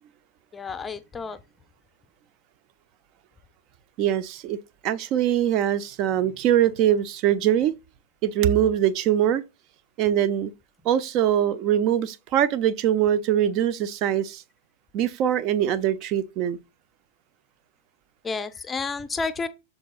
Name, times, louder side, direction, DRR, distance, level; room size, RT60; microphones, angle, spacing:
voice 1, 0.5-1.4 18.2-19.5, left 4 dB, 15° left, 0.6 m, -30 dB
voice 2, 4.0-4.6 4.8-7.7 8.2-9.4 10.0-10.5 10.8-14.4 14.9-16.6, right 10 dB, 40° right, 0.5 m, -22 dB
6.4 x 3.9 x 3.9 m
figure-of-eight pair, 90°, 0 cm